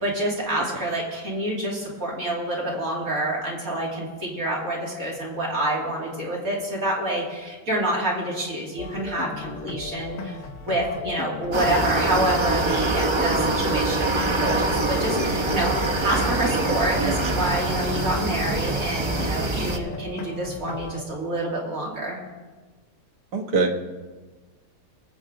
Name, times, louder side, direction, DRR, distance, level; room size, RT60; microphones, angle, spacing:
voice 1, 0.0-15.7 16.0-22.2, right 1 dB, 55° right, -3 dB, 2.9 m, -27 dB
sound 1, 8.8-21.1, left 4 dB, 60° left, 1.0 m, -36 dB
sound 2, 11.5-19.8, right 2 dB, 25° right, 0.6 m, -24 dB
voice 2, 17.0-17.3 23.3-23.8, right 3 dB, 75° right, 2 dB, 1.9 m, -24 dB
21.5 x 8.0 x 3.8 m, 1.3 s
omnidirectional pair, 1.8 m